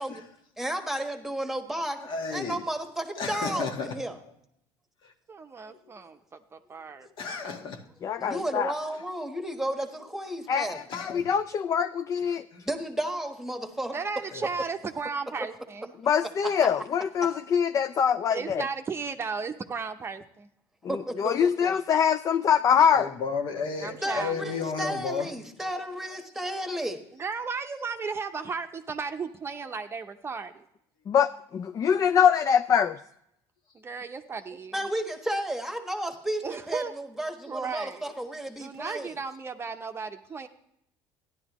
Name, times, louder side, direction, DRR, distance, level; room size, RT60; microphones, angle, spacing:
voice 1, 0.6-2.0 2.3-4.2 8.2-10.8 12.6-13.9 15.4-15.5 16.2-16.5 17.2-17.3 20.9-21.7 24.0-27.0 34.7-39.2, right 1 dB, 5° right, 1.2 m, -33 dB
voice 2, 2.0-2.6 3.2-4.0 5.0-5.1 7.2-7.8 10.9-11.3 12.5-12.7 14.3-14.4 22.9-25.3, left 5 dB, 55° left, 1.4 m, -33 dB
voice 3, 5.3-6.2 6.5-7.1 13.9-15.9 18.3-20.5 23.8-24.5 27.1-30.6 33.7-34.8 36.4-36.9 37.5-38.1 38.5-40.5, right 5 dB, 25° right, 0.7 m, -35 dB
voice 4, 8.0-8.7 10.5-12.5 16.0-18.7 21.2-23.1 31.1-33.0, left 7 dB, 35° left, 0.4 m, -24 dB
13.5 x 11.0 x 3.0 m
cardioid pair, 110°, 10 cm